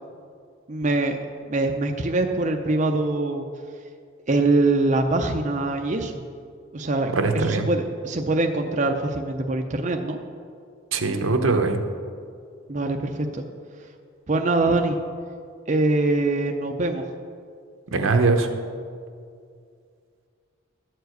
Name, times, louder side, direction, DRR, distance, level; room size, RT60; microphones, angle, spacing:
voice 1, 0.7-1.2 1.4-3.5 4.3-6.2 6.7-10.2 12.7-13.4 13.8-13.9 14.3-15.0 15.7-17.1, right 2 dB, 35° right, 3 dB, 0.5 m, -23 dB
voice 2, 7.1-7.7 10.9-11.8 17.9-18.5, right 3 dB, 80° right, 5 dB, 0.9 m, -21 dB
13.0 x 4.7 x 7.9 m, 2.3 s
head